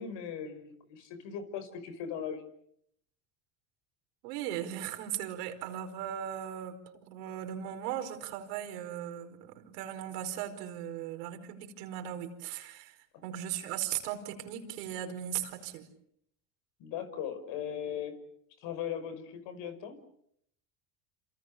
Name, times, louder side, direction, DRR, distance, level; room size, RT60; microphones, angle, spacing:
voice 1, 0.0-2.4 16.8-18.2 18.6-20.0, left 8 dB, 65° left, 10 dB, 5.8 m, -38 dB
voice 2, 4.2-15.9, right 10 dB, 80° right, 6 dB, 5.0 m, -38 dB
28.0 x 27.5 x 6.9 m, 0.71 s
supercardioid pair, 95°, 47 cm